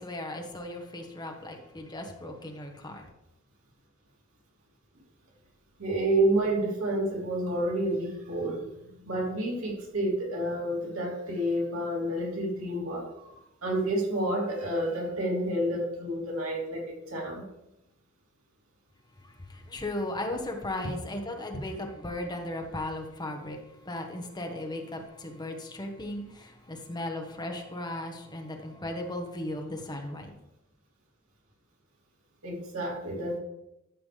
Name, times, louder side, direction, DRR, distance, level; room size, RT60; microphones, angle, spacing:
voice 1, 0.0-3.0 19.2-23.6 23.8-30.3, left 1 dB, 20° left, 3 dB, 1.2 m, -36 dB
voice 2, 5.8-8.7 9.0-17.4 32.4-33.4, right 1 dB, 85° right, -3 dB, 3.0 m, -29 dB
12.5 x 7.2 x 3.4 m, 0.87 s
head